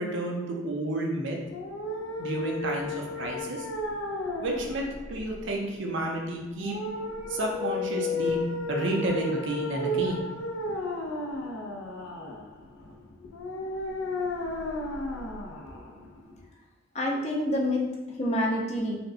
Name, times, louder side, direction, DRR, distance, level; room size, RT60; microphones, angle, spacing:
voice 1, 0.0-1.4 2.2-3.7 4.4-6.8 7.3-8.4 8.7-10.2, right 1 dB, 60° right, 0 dB, 0.6 m, -31 dB
sound 1, 1.5-16.5, left 1 dB, 85° left, 0.5 m, -34 dB
voice 2, 16.9-19.0, left 1 dB, 30° left, -1 dB, 0.5 m, -27 dB
4.1 x 2.1 x 2.7 m, 1.1 s
head